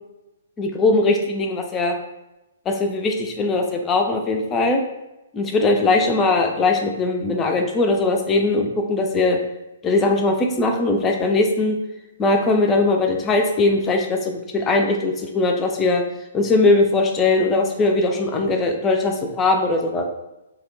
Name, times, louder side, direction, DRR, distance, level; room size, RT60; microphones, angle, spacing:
voice 1, 0.6-2.0 2.7-4.8 5.3-9.4 9.8-11.8 12.2-16.0 16.3-20.1, left 2 dB, 15° left, 3 dB, 0.4 m, -20 dB
2.8 x 2.1 x 3.8 m, 0.97 s
figure-of-eight pair, 120°, 0 cm